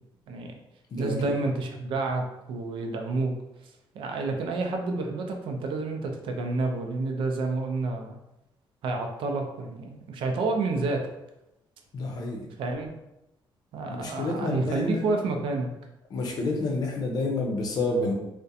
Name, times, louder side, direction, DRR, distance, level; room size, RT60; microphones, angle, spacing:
voice 1, 1.0-3.4 3.6-8.2 8.8-11.1 12.6-12.9 13.7-15.7, right 3 dB, 80° right, 3 dB, 0.4 m, -29 dB
voice 2, 11.9-12.5 13.9-15.1 16.1-18.1, left 2 dB, 50° left, 1 dB, 0.5 m, -29 dB
2.3 x 2.1 x 2.6 m, 0.90 s
cardioid pair, 165°, 9 cm